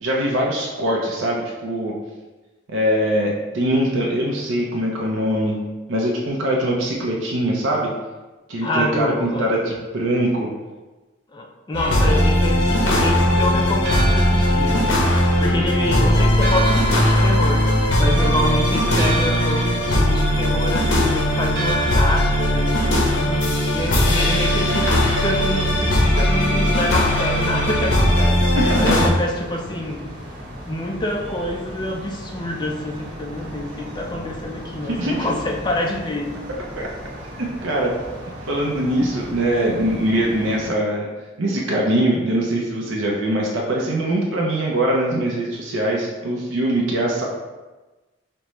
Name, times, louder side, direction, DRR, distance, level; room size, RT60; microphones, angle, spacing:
voice 1, 0.0-1.9 2.7-5.6 5.9-7.9 8.5-10.5 28.5-29.1 34.9-35.3 36.7-36.9 37.4-37.9 38.5-41.1 41.4-47.2, right 1 dB, 85° right, -2 dB, 0.6 m, -22 dB
voice 2, 8.6-9.5 11.3-28.4 28.8-30.0 30.7-36.3, left 1 dB, 25° left, 1 dB, 0.4 m, -27 dB
sound 1, 11.7-29.1, equal, 70° left, 0.8 m, -18 dB
Church bell, 13.6-25.2, right 2 dB, 55° right, 1.0 m, -33 dB
sound 2, 24.9-40.7, equal, 25° right, 0.9 m, -37 dB
5.1 x 2.2 x 3.0 m, 1.2 s
head